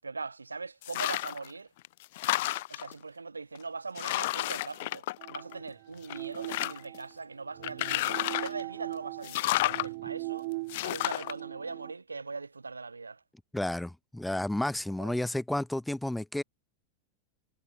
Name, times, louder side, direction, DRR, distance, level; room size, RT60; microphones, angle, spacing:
voice 1, 0.0-1.7 2.2-10.5 10.8-13.2 15.0-15.3, right 4 dB, 80° right, 7.7 m, -41 dB
sound 1, 0.8-1.5 1.8-2.9 3.5-3.6 4.0-5.7 6.0-7.0 7.6-8.6 9.2-9.9 10.7-11.3, left 18 dB, 50° left, 2.5 m, -31 dB
sound 2, 5.2-11.9, right 24 dB, 50° right, 3.5 m, -40 dB
voice 2, 13.5-16.4, left 1 dB, 5° left, 0.5 m, -31 dB
figure-of-eight pair, 90°, 0 cm